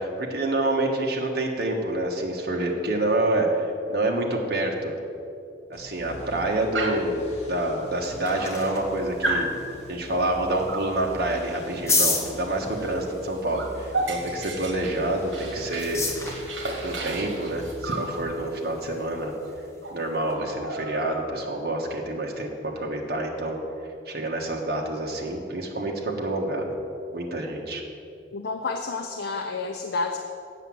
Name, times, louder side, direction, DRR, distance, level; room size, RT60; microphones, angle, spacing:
voice 1, 0.0-4.9 5.7-9.5 9.9-16.1 16.8-19.3 19.9-23.6 24.0-26.7 27.1-27.8, right 1 dB, 55° right, 0 dB, 1.4 m, -27 dB
sound 1, 5.7-18.2, equal, 35° left, 1.5 m, -44 dB
Dog, 6.7-7.2 8.0-8.1 8.4-8.9 9.2-9.5 10.7-11.0 12.8-13.0 13.2-16.0 16.3-18.1 19.4-19.5 19.8-20.0 20.3-21.5, right 2 dB, 80° right, 1.5 m, -32 dB
sound 2, 7.8-20.4, left 3 dB, 15° left, 1.1 m, -34 dB
voice 2, 28.3-30.2, left 3 dB, 65° left, 4 dB, 0.6 m, -30 dB
8.1 x 7.1 x 7.6 m, 2.6 s
head